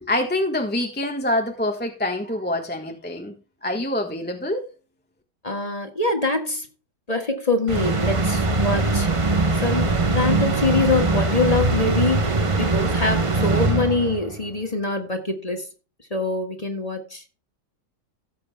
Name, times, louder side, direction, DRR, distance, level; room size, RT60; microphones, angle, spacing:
voice 1, 0.0-3.3 3.6-4.6, left 1 dB, 5° left, 1.1 m, -25 dB
voice 2, 5.4-6.7 7.1-9.3 9.6-15.7 16.1-17.2, left 3 dB, 25° left, 1.6 m, -24 dB
sound 1, 7.7-14.4, right 3 dB, 25° right, 0.7 m, -22 dB
16.5 x 7.7 x 2.2 m
omnidirectional pair, 1.8 m